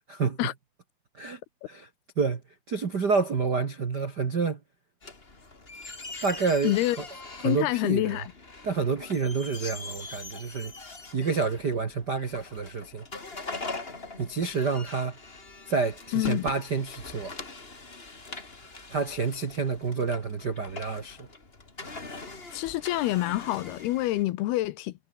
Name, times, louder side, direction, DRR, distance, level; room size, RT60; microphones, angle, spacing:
voice 1, 2.7-4.6 6.2-7.0 7.4-8.2 8.6-10.7 11.1-13.0 14.2-15.2 15.7-17.3 18.9-21.3, right 4 dB, 55° right, 1.1 m, -28 dB
sound 1, 5.0-24.2, left 3 dB, 20° left, 2.0 m, -43 dB
voice 2, 6.6-7.0 7.4-8.3 16.1-16.5 22.5-24.9, left 16 dB, 80° left, 2.7 m, -27 dB
omnidirectional pair, 4.8 m